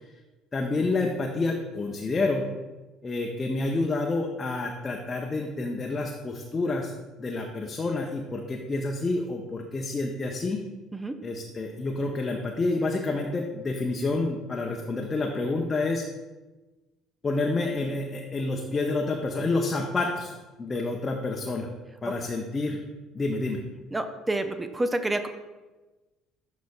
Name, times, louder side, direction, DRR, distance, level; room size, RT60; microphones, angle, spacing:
voice 1, 0.5-2.5 3.0-6.9 7.2-10.6 11.2-16.1 17.2-20.3 20.6-21.7 22.0-22.8 23.1-23.6, left 3 dB, 30° left, 1 dB, 0.7 m, -28 dB
voice 2, 23.9-25.3, right 1 dB, 15° right, 9 dB, 0.5 m, -28 dB
11.5 x 4.1 x 2.3 m, 1.2 s
figure-of-eight pair, 55°, 0 cm